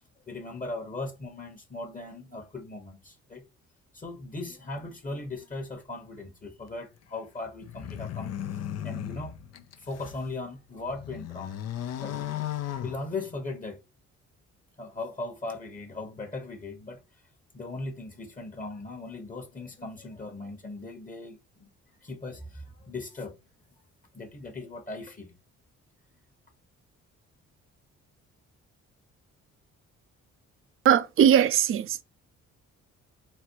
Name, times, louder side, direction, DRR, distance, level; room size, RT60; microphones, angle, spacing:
voice 1, 0.3-3.4 3.9-11.6 12.0-12.2 12.8-13.8 14.8-17.0 17.5-21.7 22.0-23.3 24.1-25.3, left 2 dB, 25° left, 1.1 m, -38 dB
sound 1, 7.6-10.3 10.7-13.6, left 11 dB, 55° left, 0.5 m, -36 dB
voice 2, 30.8-32.0, right 9 dB, 45° right, 0.5 m, -20 dB
4.1 x 2.2 x 4.5 m
cardioid pair, 90°, 30 cm